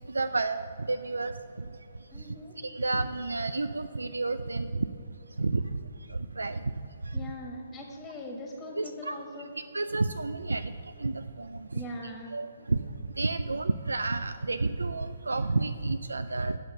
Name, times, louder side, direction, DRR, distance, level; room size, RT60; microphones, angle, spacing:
voice 1, 0.0-1.3 2.6-4.9 5.4-5.6 6.1-6.6 7.1-7.2 8.8-9.2 9.7-11.8 12.3-12.8 13.2-16.6, right 3 dB, 90° right, 10 dB, 0.3 m, -30 dB
voice 2, 2.1-2.6 7.1-9.5 11.7-12.3, left 1 dB, 15° left, 1 dB, 1.6 m, -41 dB
7.9 x 6.8 x 6.8 m, 2.8 s
figure-of-eight pair, 135°, 0 cm